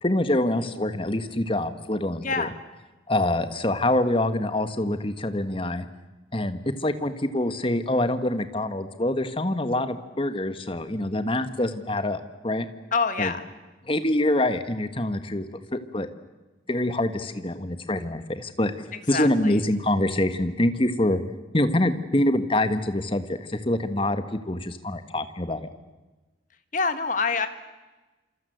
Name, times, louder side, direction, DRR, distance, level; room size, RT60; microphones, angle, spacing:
voice 1, 0.0-2.5 3.1-5.8 6.3-12.6 13.2-13.3 13.9-15.4 15.7-16.1 16.7-18.7 19.1-21.2 21.5-25.7, left 1 dB, 30° left, 10 dB, 1.5 m, -25 dB
voice 2, 2.2-2.5 12.9-13.4 18.9-19.6 26.7-27.5, left 4 dB, 45° left, 9 dB, 1.8 m, -26 dB
27.5 x 26.5 x 8.0 m, 1.2 s
head